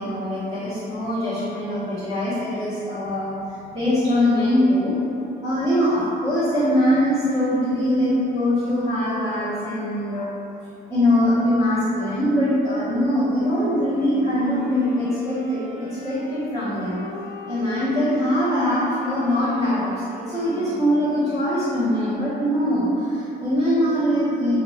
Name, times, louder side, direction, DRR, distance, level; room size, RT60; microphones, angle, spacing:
voice 1, 0.0-3.3 3.6-4.9 5.4-10.3 10.9-17.0 17.4-19.9 20.2-24.6, equal, 25° right, -18 dB, 1.2 m, -22 dB
Wind instrument woodwind instrument, 13.9-21.5, left 1 dB, 90° left, 0.6 m, -37 dB
3.0 x 2.7 x 2.8 m, 2.8 s
cardioid pair, 135°, 18 cm